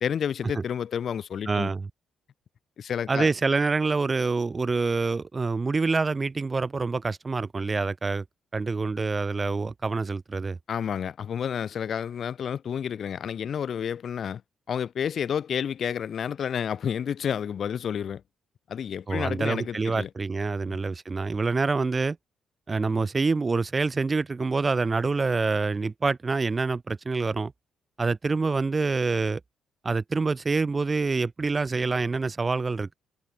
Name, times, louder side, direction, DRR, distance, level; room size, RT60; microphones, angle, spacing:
voice 1, 0.0-1.7 2.8-3.3 10.7-14.4 14.7-18.2 18.7-20.1 20.7-20.8, left 8 dB, 55° left, 2.0 m, -30 dB
voice 2, 1.5-1.9 3.1-8.2 8.5-10.6 19.1-22.2 22.7-27.5 28.0-29.4 29.8-32.9, right 4 dB, 30° right, 0.6 m, -26 dB
cardioid pair, 90°, 0 cm